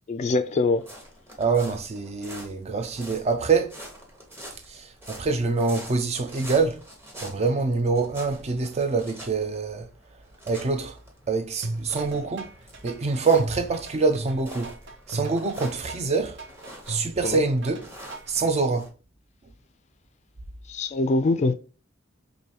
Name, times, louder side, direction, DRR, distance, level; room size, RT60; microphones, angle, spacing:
voice 1, 0.1-0.8 7.2-7.3 17.2-17.4 20.7-21.5, left 3 dB, 35° left, 0.3 m, -23 dB
sound 1, 0.7-18.9, equal, 15° right, 0.9 m, -46 dB
voice 2, 1.4-3.7 4.7-6.8 7.2-9.9 10.5-11.0 11.3-12.5 12.8-14.7 15.1-16.4 16.9-17.9 18.3-18.9, right 4 dB, 35° right, 0.4 m, -25 dB
sound 2, 11.6-18.4, right 2 dB, 65° right, 0.7 m, -36 dB
4.7 x 2.6 x 2.8 m
head